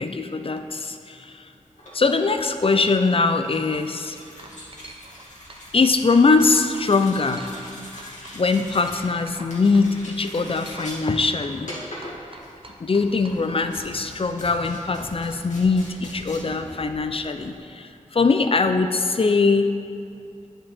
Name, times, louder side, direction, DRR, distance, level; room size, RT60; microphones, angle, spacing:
voice 1, 0.0-1.4 1.9-4.2 5.7-7.4 7.9-11.7 12.8-19.7, left 4 dB, 45° left, 8 dB, 0.5 m, -22 dB
sound 1, 1.6-17.6, left 1 dB, 65° left, 1.8 m, -42 dB
sound 2, 3.8-3.9 4.4-5.2 5.5-7.7 8.0-9.5 9.7-9.9 10.3-10.9 11.1-13.7, right 2 dB, 40° right, 0.8 m, -44 dB
10.0 x 5.1 x 4.3 m, 2.5 s
wide cardioid pair, 70°, 13 cm